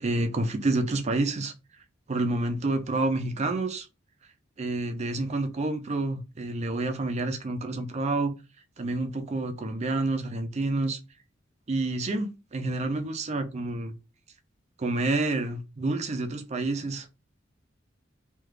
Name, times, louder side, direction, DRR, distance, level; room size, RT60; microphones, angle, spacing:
voice 1, 0.0-1.5 2.1-3.9 4.6-8.3 8.8-11.0 11.7-13.9 14.8-17.1, right 2 dB, 35° right, 0.5 m, -28 dB
3.3 x 2.3 x 3.2 m
head